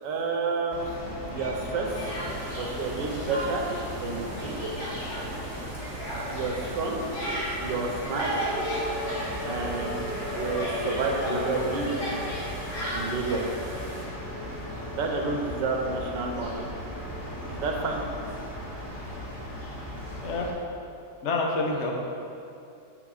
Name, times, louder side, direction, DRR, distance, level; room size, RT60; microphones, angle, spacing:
voice 1, 0.0-1.9 2.5-3.6 4.0-4.6 6.3-7.0 7.6-8.3 9.4-10.0 10.3-11.9 12.9-13.4 15.0-16.6 17.5-18.0, right 3 dB, 85° right, 1 dB, 1.6 m, -30 dB
sound 1, 0.7-20.5, equal, 25° left, 1.7 m, -36 dB
Speech, 1.4-2.7 3.0-9.8 10.1-13.5, right 1 dB, 65° left, 2.8 m, -35 dB
sound 2, 1.8-14.1, right 1 dB, 30° right, 1.4 m, -43 dB
voice 2, 20.2-20.5 21.2-22.1, left 2 dB, 50° left, 0 dB, 1.1 m, -30 dB
10.0 x 4.0 x 4.9 m, 2.6 s
omnidirectional pair, 1.9 m